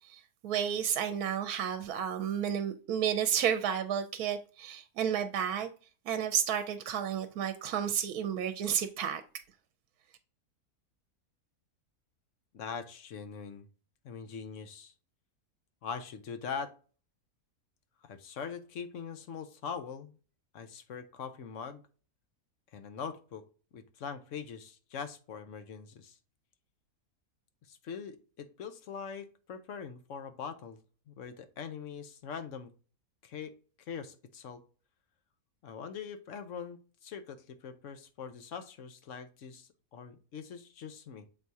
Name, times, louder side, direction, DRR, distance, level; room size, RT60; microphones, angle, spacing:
voice 1, 0.1-5.7 6.1-9.2, right 8 dB, 85° right, 1.1 m, -31 dB
voice 2, 12.5-13.7 14.0-14.9 15.8-16.7 18.0-20.2 20.5-21.8 22.7-23.4 23.7-26.2 27.7-30.8 31.1-32.7 33.2-34.6 35.6-41.3, left 6 dB, 60° left, 1.0 m, -42 dB
7.5 x 2.8 x 4.6 m
omnidirectional pair, 1.6 m